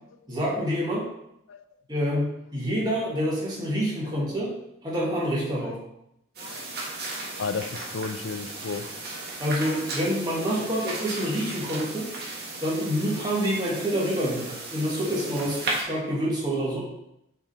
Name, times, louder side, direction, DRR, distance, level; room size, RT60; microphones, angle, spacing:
voice 1, 0.3-1.0 1.9-4.5 4.8-5.8 9.4-12.1 12.6-16.8, equal, 20° right, -6 dB, 1.8 m, -27 dB
sound 1, 6.3-15.8, right 2 dB, 55° right, 1.4 m, -35 dB
voice 2, 6.4-6.7 7.4-8.9, left 4 dB, 85° left, 10 dB, 0.5 m, -33 dB
6.1 x 3.7 x 4.3 m, 0.81 s
head